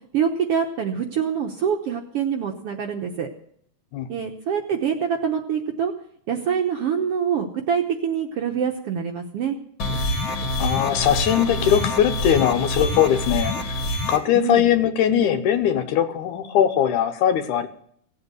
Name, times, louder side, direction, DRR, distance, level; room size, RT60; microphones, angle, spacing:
voice 1, 0.1-3.3 4.1-5.9 6.3-9.6 14.3-14.6, right 7 dB, 65° right, 3 dB, 1.6 m, -25 dB
sound 1, 9.8-14.2, left 1 dB, 45° left, 2.4 m, -26 dB
voice 2, 10.6-13.7 14.1-17.7, left 10 dB, 80° left, 10 dB, 2.4 m, -20 dB
17.0 x 7.9 x 8.0 m, 0.66 s
omnidirectional pair, 3.5 m